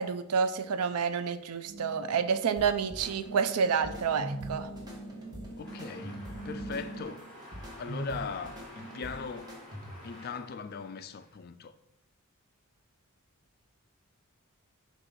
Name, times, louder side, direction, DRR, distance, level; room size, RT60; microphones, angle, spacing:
voice 1, 0.0-4.7, right 6 dB, 85° right, 0.4 m, -29 dB
sound 1, 1.6-7.0, right 2 dB, 45° right, 1.5 m, -45 dB
sound 2, 2.6-10.2, right 1 dB, 20° right, 1.1 m, -43 dB
voice 2, 5.6-7.2 7.8-9.6 10.0-11.7, left 5 dB, 45° left, 0.3 m, -39 dB
sound 3, 5.6-11.3, left 1 dB, 5° left, 1.9 m, -51 dB
6.8 x 2.5 x 5.5 m
head